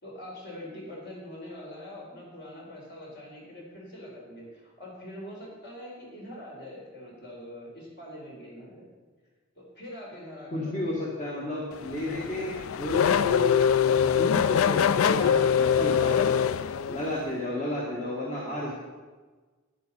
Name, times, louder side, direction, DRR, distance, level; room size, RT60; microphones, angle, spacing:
voice 1, 0.0-8.9 9.6-11.1 12.1-12.5 17.0-17.6 17.9-18.4, left 1 dB, 55° left, -3 dB, 4.3 m, -44 dB
voice 2, 10.5-16.5 16.9-18.7, left 1 dB, 35° left, -4 dB, 1.8 m, -33 dB
Race car auto racing / Accelerating revving vroom, 11.7-17.3, left 8 dB, 85° left, 0.4 m, -24 dB
10.5 x 10.5 x 5.5 m, 1.4 s
head